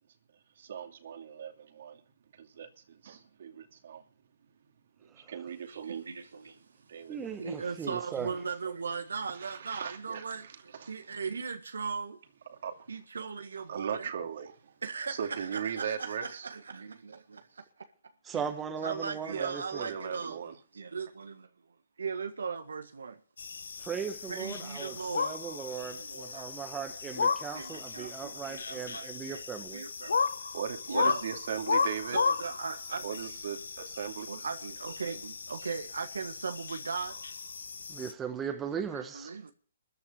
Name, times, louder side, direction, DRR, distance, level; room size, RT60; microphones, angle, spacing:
voice 1, 0.6-2.0 2.4-4.0 5.0-6.0 6.9-7.2 9.3-10.9 12.5-12.7 13.7-14.7 15.1-16.5 19.3-20.6 30.5-32.2 33.0-34.3, right 7 dB, 60° right, 2.5 m, -38 dB
voice 2, 5.7-6.6 7.4-12.2 12.9-14.1 14.8-17.9 18.3-18.4 18.8-20.4 20.7-21.5 22.0-23.2 24.3-25.4 25.7-26.5 26.9-27.0 27.3-29.4 29.7-30.3 30.9-31.2 32.1-33.4 34.3-37.2 38.7-39.5, right 5 dB, 80° right, 1.6 m, -38 dB
voice 3, 7.1-8.3 18.2-19.9 23.8-29.8 37.9-39.3, right 7 dB, 15° right, 1.1 m, -38 dB
sound 1, 23.4-38.1, left 5 dB, 75° left, 1.0 m, -35 dB
14.0 x 7.2 x 9.0 m
hypercardioid pair, 135°, 0 cm